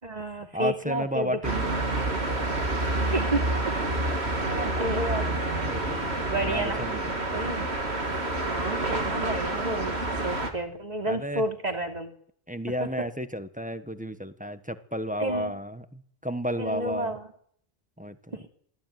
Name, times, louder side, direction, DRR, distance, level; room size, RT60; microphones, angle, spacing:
voice 1, 0.0-1.6 3.1-3.8 4.4-5.3 6.3-6.8 7.3-7.8 8.4-12.1 12.8-12.9 15.2-15.5 16.6-17.2 18.3-18.5, right 1 dB, 40° right, 4 dB, 3.1 m, -31 dB
voice 2, 0.5-1.7 5.6-6.1 6.4-7.1 11.1-11.4 12.5-17.2 18.0-18.3, equal, 10° right, 10 dB, 1.2 m, -32 dB
sound 1, 1.4-10.5, right 2 dB, 85° right, 3.2 m, -28 dB
27.0 x 17.5 x 9.3 m, 0.64 s
omnidirectional pair, 1.1 m